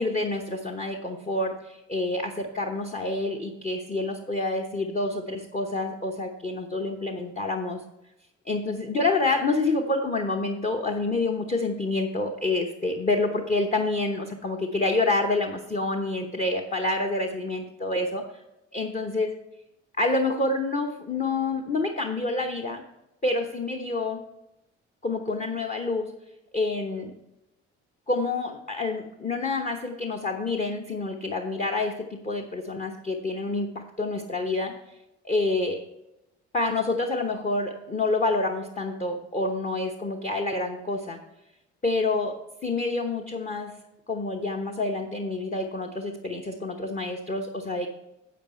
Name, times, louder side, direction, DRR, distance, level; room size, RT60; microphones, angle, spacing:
voice 1, 0.0-7.8 8.5-18.3 18.7-19.3 20.0-22.8 23.2-24.2 25.0-26.1 26.5-27.1 28.1-34.8 35.2-35.8 36.5-41.2 41.8-42.4 42.6-43.7 44.1-47.9, left 2 dB, 20° left, 2 dB, 1.0 m, -28 dB
10.0 x 7.3 x 4.4 m, 0.91 s
figure-of-eight pair, 50°, 35 cm